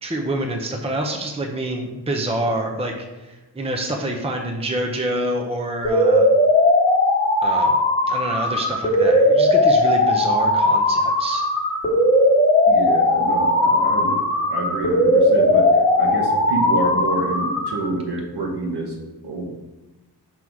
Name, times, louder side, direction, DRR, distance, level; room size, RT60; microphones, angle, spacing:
voice 1, 0.0-2.9 3.2-6.3 7.4-7.8 8.1-11.5, right 1 dB, 15° right, 3 dB, 0.6 m, -27 dB
sound 1, 5.8-17.8, left 1 dB, 20° left, 1.4 m, -18 dB
voice 2, 12.7-18.9 19.2-19.5, right 2 dB, 65° right, 0 dB, 1.4 m, -27 dB
6.0 x 3.9 x 4.6 m, 1.1 s
wide cardioid pair, 125°, 42 cm